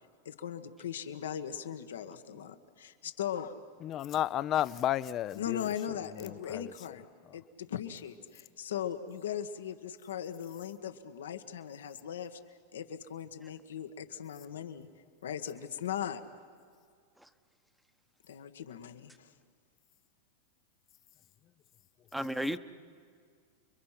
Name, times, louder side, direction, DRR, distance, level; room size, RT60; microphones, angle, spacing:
voice 1, 0.2-3.6 5.4-7.0 7.3-12.4 12.7-14.9 15.2-16.2 18.3-19.3, left 9 dB, 85° left, 1.5 m, -39 dB
voice 2, 3.8-5.7 6.1-6.7, left 12 dB, 35° left, 0.5 m, -32 dB
voice 3, 22.1-22.6, equal, ahead, 1.0 m, -35 dB
29.5 x 22.5 x 5.9 m
hypercardioid pair, 120°, 0 cm